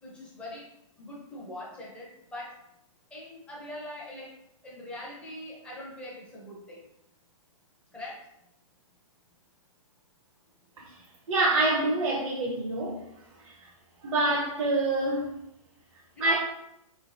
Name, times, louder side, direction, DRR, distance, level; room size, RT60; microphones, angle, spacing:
voice 1, 0.0-0.7 1.0-2.6 3.1-4.4 4.6-6.9 7.9-8.3 16.1-16.4, left 1 dB, 5° left, 0.6 m, -42 dB
voice 2, 11.3-13.0 13.4-13.5 14.0-15.3 16.2-16.4, right 2 dB, 65° right, 0.8 m, -26 dB
3.5 x 3.1 x 2.7 m
hypercardioid pair, 160°, 18 cm